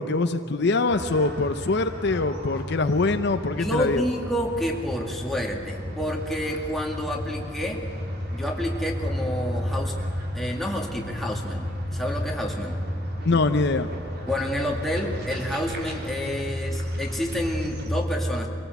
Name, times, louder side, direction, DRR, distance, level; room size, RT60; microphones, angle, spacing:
voice 1, 0.0-4.0 13.2-13.9, left 3 dB, 60° left, 9 dB, 0.7 m, -23 dB
sound 1, 0.9-17.9, equal, 55° right, 3.1 m, -33 dB
voice 2, 3.6-7.8 8.3-10.0 10.3-12.8 14.3-18.5, equal, ahead, -1 dB, 2.2 m, -29 dB
24.0 x 17.5 x 8.1 m, 2.5 s
head